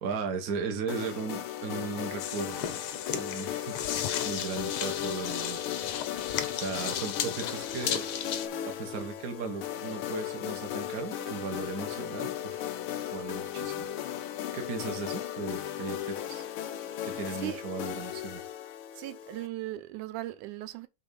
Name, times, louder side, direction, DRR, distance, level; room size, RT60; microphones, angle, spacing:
voice 1, 0.0-2.8 3.1-3.9 4.2-5.6 6.5-8.0 8.6-12.7 13.1-13.9 14.5-16.5 17.0-18.4, right 5 dB, 45° right, 1.1 m, -36 dB
sound 1, 0.9-19.5, left 11 dB, 85° left, 1.2 m, -36 dB
sound 2, 2.2-8.5, left 9 dB, 70° left, 1.3 m, -35 dB
voice 2, 19.0-20.9, right 16 dB, 90° right, 2.1 m, -37 dB
6.9 x 3.8 x 5.3 m
omnidirectional pair, 3.4 m